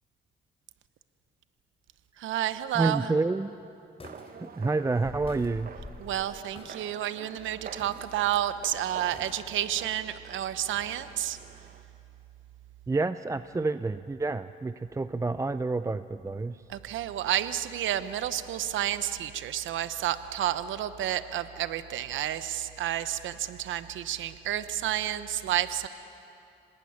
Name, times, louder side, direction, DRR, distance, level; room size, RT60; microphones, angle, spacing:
voice 1, 2.2-3.1 6.0-11.4 16.7-25.9, right 12 dB, 75° right, 13 dB, 0.9 m, -30 dB
voice 2, 2.7-3.6 4.4-5.7 12.9-16.6, right 3 dB, 15° right, 13 dB, 0.5 m, -29 dB
sound 1, 4.0-4.3 4.6-4.7 5.0-6.8 7.2-7.3 7.8-8.0 8.3-8.6 9.1-9.7 10.7-11.0 11.4-11.5, left 3 dB, 30° left, 3.6 m, -46 dB
sound 2, 4.0-11.8, right 6 dB, 50° right, 1.4 m, -48 dB
26.0 x 19.0 x 9.6 m, 2.7 s
cardioid pair, 90°, 20 cm